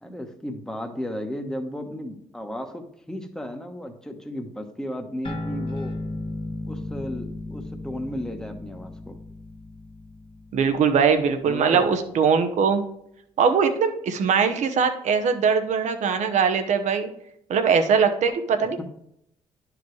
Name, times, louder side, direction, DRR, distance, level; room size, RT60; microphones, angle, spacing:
voice 1, 0.0-6.0 6.7-9.2 11.5-11.8, equal, 5° left, 4 dB, 1.1 m, -34 dB
sound 1, 5.2-12.1, left 2 dB, 45° left, 1.2 m, -36 dB
voice 2, 10.5-12.8 13.4-17.1 17.5-18.8, right 6 dB, 70° right, 7 dB, 0.9 m, -21 dB
10.5 x 4.9 x 3.2 m, 0.75 s
cardioid pair, 75°, 12 cm